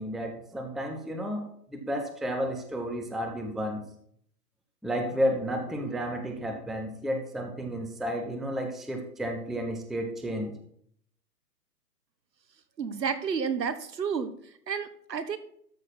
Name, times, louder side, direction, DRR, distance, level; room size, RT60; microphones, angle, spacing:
voice 1, 0.0-3.8 4.8-10.6, equal, ahead, 4 dB, 0.4 m, -32 dB
voice 2, 12.8-14.3 14.7-15.4, right 6 dB, 85° right, 12 dB, 1.4 m, -30 dB
13.0 x 6.1 x 4.4 m, 0.66 s
hypercardioid pair, 175°, 49 cm